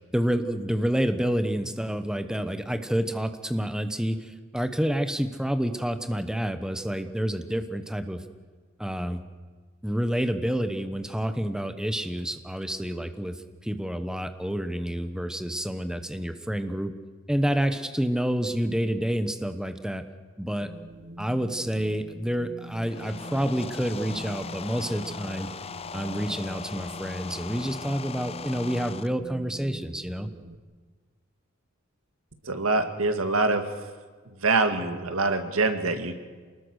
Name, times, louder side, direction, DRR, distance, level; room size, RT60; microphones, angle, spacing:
voice 1, 0.1-8.2 8.8-9.2 9.8-13.4 13.6-16.9 17.3-20.0 20.4-20.7 21.2-25.5 25.9-30.3, equal, 5° right, 9 dB, 1.1 m, -28 dB
Wind, 20.6-30.6, right 1 dB, 60° right, 1.4 m, -44 dB
sound 1, 22.6-29.1, left 6 dB, 30° left, 0.6 m, -39 dB
voice 2, 32.4-33.8 34.3-36.1, right 3 dB, 90° right, 8 dB, 2.0 m, -25 dB
28.0 x 19.5 x 6.5 m, 1.5 s
head